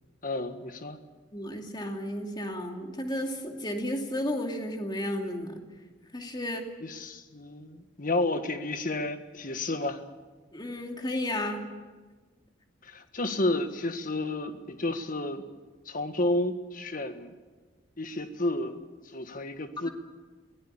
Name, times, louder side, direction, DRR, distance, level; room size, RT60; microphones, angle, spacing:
voice 1, 0.2-1.0 6.8-10.0 12.8-15.4 15.8-17.3 18.0-18.8 19.1-19.9, left 2 dB, 45° left, 8 dB, 1.6 m, -31 dB
voice 2, 1.3-5.6 6.1-6.6 10.5-11.6, left 1 dB, 25° left, 3 dB, 2.6 m, -33 dB
23.0 x 17.5 x 8.7 m, 1.3 s
head